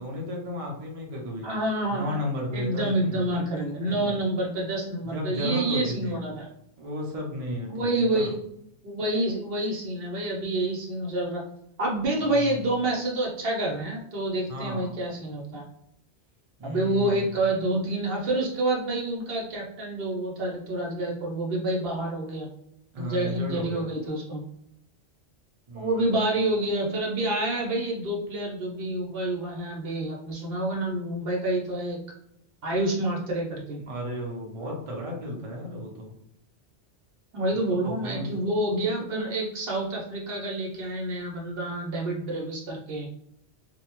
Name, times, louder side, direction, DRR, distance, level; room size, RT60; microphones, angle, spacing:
voice 1, 0.0-1.5 1.9-4.1 5.0-6.2 6.8-8.3 12.3-12.6 14.5-15.0 16.6-17.3 22.9-23.9 25.7-26.2 33.8-36.1 37.5-38.3, left 1 dB, 40° right, -1 dB, 0.6 m, -34 dB
voice 2, 1.4-2.2 2.5-6.5 7.7-8.4 8.8-11.4 11.8-15.6 16.6-22.5 23.0-24.4 25.7-32.0 32.6-33.8 37.3-43.1, right 1 dB, 65° right, -2 dB, 0.9 m, -28 dB
2.7 x 2.1 x 2.9 m, 0.74 s
omnidirectional pair, 1.1 m